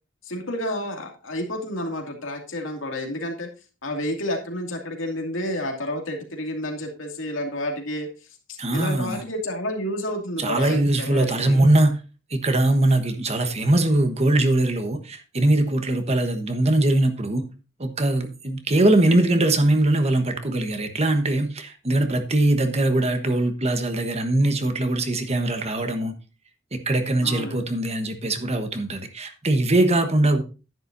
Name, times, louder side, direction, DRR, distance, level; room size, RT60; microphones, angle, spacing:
voice 1, 0.2-3.5 3.8-11.7 27.2-27.7, left 1 dB, 80° left, 2 dB, 2.5 m, -30 dB
voice 2, 8.6-9.2 10.4-12.0 12.3-17.4 17.8-26.1 26.7-30.4, right 1 dB, 35° right, 7 dB, 1.2 m, -21 dB
10.5 x 10.0 x 2.7 m, 0.32 s
head